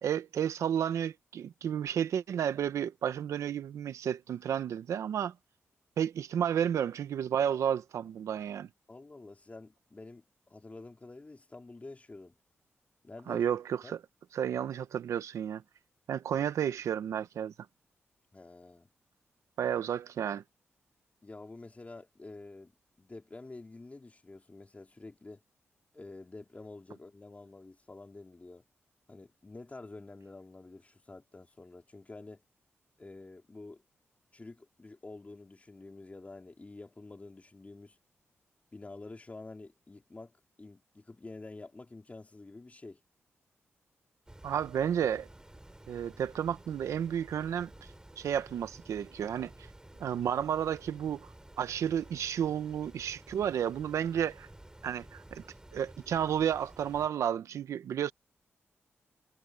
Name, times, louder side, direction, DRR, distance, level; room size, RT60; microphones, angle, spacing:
voice 1, 0.0-5.3 6.0-8.7 13.3-14.0 14.3-15.6 16.1-17.5 19.6-20.4 44.4-45.3 45.9-47.7 48.2-49.5 50.0-51.2 51.6-54.5 54.8-55.4 55.7-58.1, right 9 dB, 85° right, 0.9 m, -32 dB
voice 2, 8.9-12.3 13.0-13.5 13.8-13.9 18.3-18.9 21.2-22.7 23.0-25.4 25.9-28.6 29.1-32.4 33.0-33.8 34.3-38.0 38.7-43.0, left 2 dB, 30° left, 3.5 m, -48 dB
sound 1, 44.3-57.1, right 1 dB, 15° right, 3.3 m, -53 dB
cardioid pair, 65°, 5 cm